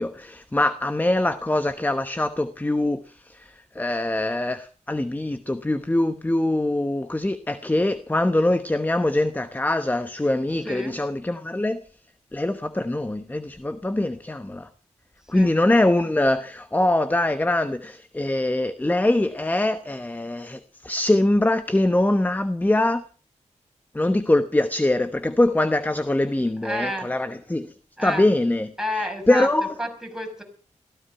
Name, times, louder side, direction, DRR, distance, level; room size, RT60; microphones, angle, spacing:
voice 1, 0.0-11.8 12.3-14.7 15.3-23.0 23.9-27.7 28.0-28.7 29.3-29.7, left 1 dB, 15° left, 1.0 m, -23 dB
voice 2, 10.6-10.9 15.3-15.5 26.6-27.1 28.0-28.2 28.8-29.5 29.8-30.4, equal, 5° right, 5.7 m, -29 dB
17.5 x 15.0 x 5.6 m
wide cardioid pair, 85°, 13 cm